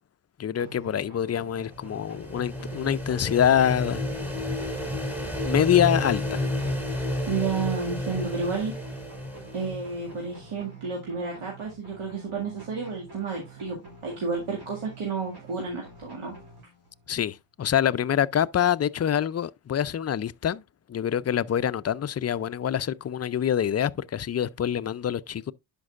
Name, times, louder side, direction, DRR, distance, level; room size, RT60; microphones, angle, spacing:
voice 1, 0.4-4.1 5.4-6.4 17.1-20.6 20.9-25.5, left 9 dB, 35° left, 0.4 m, -25 dB
sound 1, 0.6-17.1, right 2 dB, 50° right, 3.7 m, -48 dB
sound 2, 1.4-10.2, left 1 dB, 5° right, 2.8 m, -31 dB
voice 2, 7.3-8.7 9.5-16.3, right 5 dB, 80° right, 2.1 m, -31 dB
11.0 x 5.3 x 2.4 m
cardioid pair, 55°, 50 cm